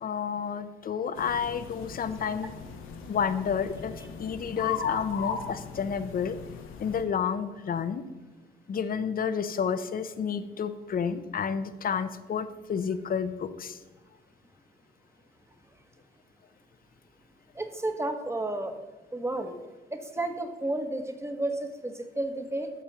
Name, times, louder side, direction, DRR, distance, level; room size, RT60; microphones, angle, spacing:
voice 1, 0.0-2.5 3.1-6.4 6.8-8.0 8.7-13.8, left 7 dB, 45° left, 12 dB, 0.8 m, -30 dB
sound 1, 1.2-7.0, left 7 dB, 85° left, 1.3 m, -37 dB
voice 2, 17.5-18.7 19.1-19.6 19.9-22.7, right 2 dB, 15° right, 6 dB, 1.3 m, -32 dB
12.5 x 4.4 x 6.7 m, 1.2 s
cardioid pair, 90°, 20 cm